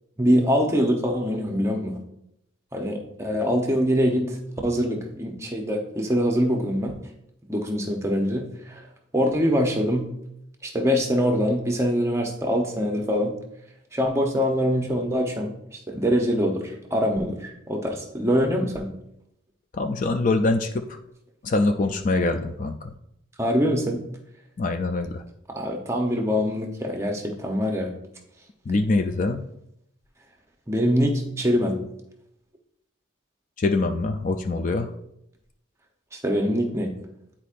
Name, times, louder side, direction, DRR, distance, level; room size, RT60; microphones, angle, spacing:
voice 1, 0.2-1.9 2.7-4.4 4.6-7.0 7.5-8.8 9.1-10.1 10.6-13.3 13.9-18.9 23.4-24.0 25.5-27.9 30.7-31.8 36.1-36.9, equal, 15° right, 2 dB, 0.8 m, -24 dB
voice 2, 19.7-20.8 21.4-22.8 24.6-25.2 28.7-29.4 33.6-34.9, left 3 dB, 40° left, 6 dB, 0.4 m, -24 dB
10.0 x 4.3 x 2.5 m, 0.79 s
head